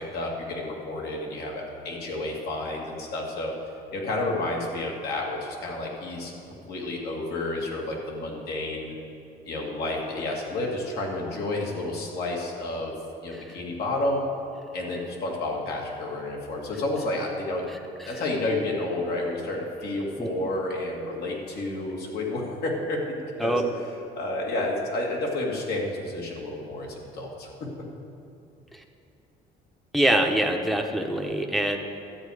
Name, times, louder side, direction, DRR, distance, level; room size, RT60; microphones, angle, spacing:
voice 1, 0.0-3.5 3.9-8.9 9.5-12.9 13.2-14.2 14.7-17.7 18.1-23.6 24.2-27.7, left 2 dB, 70° left, -1 dB, 2.2 m, -30 dB
voice 2, 29.9-31.8, right 1 dB, ahead, 2 dB, 0.9 m, -24 dB
12.5 x 8.5 x 4.9 m, 2.6 s
cardioid pair, 110°, 17 cm